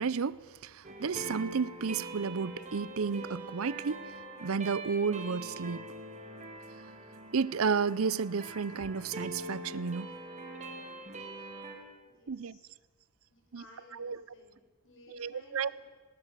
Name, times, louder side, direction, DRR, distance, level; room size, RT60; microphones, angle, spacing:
voice 1, 0.0-4.1 4.4-5.9 7.3-10.1 12.3-12.6 13.5-13.6 13.9-14.2 15.1-15.7, right 5 dB, 65° right, 0.6 m, -32 dB
sound 1, 0.8-11.8, right 2 dB, 30° right, 2.9 m, -44 dB
voice 2, 12.0-12.6 13.3-15.9, left 2 dB, 55° left, 5.9 m, -58 dB
20.0 x 18.0 x 7.4 m
head